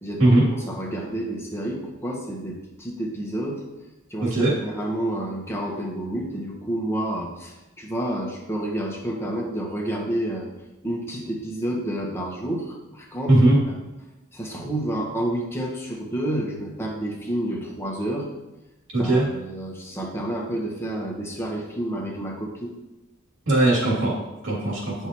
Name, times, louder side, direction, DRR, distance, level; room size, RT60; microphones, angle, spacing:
voice 1, 0.0-3.6 4.1-10.5 10.8-13.4 13.7-13.8 14.3-18.3 18.9-22.7, right 1 dB, 10° left, -1 dB, 1.3 m, -29 dB
voice 2, 4.2-4.5 13.3-13.6 18.9-19.2 23.5-24.1 24.4-25.0, right 2 dB, 60° right, -5 dB, 3.0 m, -18 dB
10.0 x 5.7 x 3.1 m, 1.0 s
head